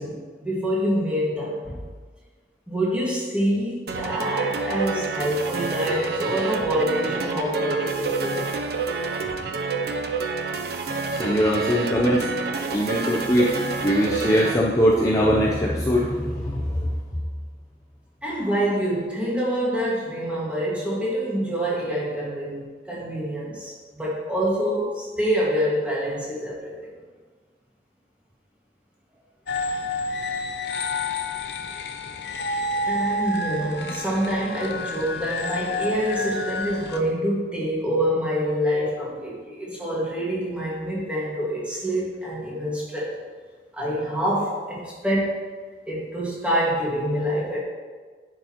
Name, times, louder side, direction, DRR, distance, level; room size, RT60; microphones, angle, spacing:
voice 1, 0.0-1.8 2.7-8.5 18.2-26.9 32.9-43.1 43.7-45.4 45.9-47.6, equal, 5° right, -6 dB, 1.9 m, -26 dB
sound 1, 3.9-14.5, right 4 dB, 60° right, 0.6 m, -28 dB
voice 2, 11.1-12.3 12.7-17.0, equal, 20° left, -4 dB, 0.7 m, -22 dB
sound 2, 29.5-37.0, left 2 dB, 65° left, 0.6 m, -29 dB
10.5 x 6.6 x 3.0 m, 1.5 s
head